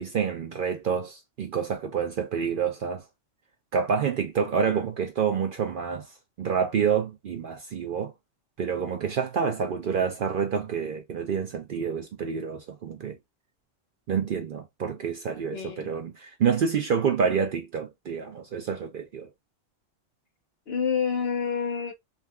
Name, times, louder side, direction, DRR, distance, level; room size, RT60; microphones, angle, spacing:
voice 1, 0.0-3.0 3.7-6.1 6.4-8.1 8.6-13.2 14.1-19.3, right 6 dB, 60° right, 0.6 m, -28 dB
voice 2, 15.5-15.9 20.7-21.9, left 6 dB, 55° left, 1.1 m, -28 dB
3.3 x 2.6 x 2.2 m
omnidirectional pair, 1.3 m